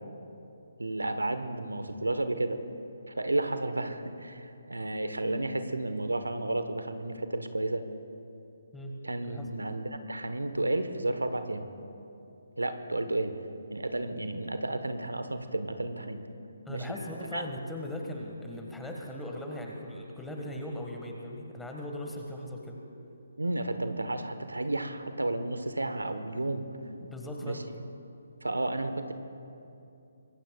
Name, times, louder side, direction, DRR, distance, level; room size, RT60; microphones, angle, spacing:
voice 1, 0.8-2.6 3.1-7.8 9.0-11.7 12.6-13.3 13.7-16.2 16.7-16.9 17.3-17.4 23.4-26.6 27.4-27.6 28.4-29.1, right 2 dB, 80° right, 9 dB, 1.2 m, -32 dB
voice 2, 16.6-22.8 27.0-27.6, left 1 dB, 5° left, 0 dB, 1.7 m, -39 dB
25.5 x 21.5 x 2.4 m, 2.7 s
figure-of-eight pair, 140°, 0 cm